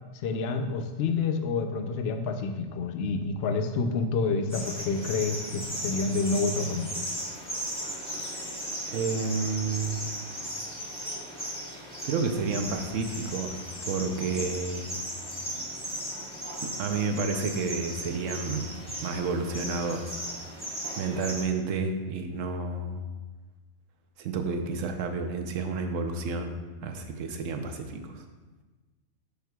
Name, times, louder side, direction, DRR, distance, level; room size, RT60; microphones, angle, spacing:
voice 1, 0.1-6.9, left 4 dB, 60° left, 6 dB, 0.7 m, -28 dB
sound 1, 4.5-21.4, equal, 5° left, 1.3 m, -37 dB
voice 2, 8.9-10.0 12.0-15.0 16.6-18.7 19.0-20.5 21.0-23.0 24.2-26.5 26.8-28.2, right 4 dB, 75° right, 5 dB, 1.0 m, -30 dB
11.5 x 4.6 x 2.3 m, 1.2 s
omnidirectional pair, 1.4 m